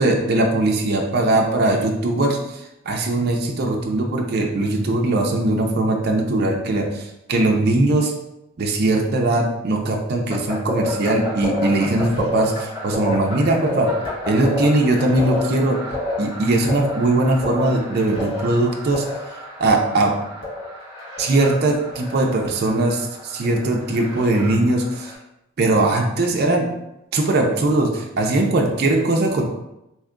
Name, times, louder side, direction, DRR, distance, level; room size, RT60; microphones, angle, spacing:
voice 1, 0.0-8.1 8.6-13.9 14.3-15.8 16.2-19.0 19.6-20.1 21.2-25.1 25.6-26.7 27.1-29.4, right 2 dB, 45° right, 1 dB, 0.4 m, -20 dB
sound 1, 10.3-25.1, left 1 dB, 60° left, 1.3 m, -29 dB
2.8 x 2.3 x 3.6 m, 0.89 s
head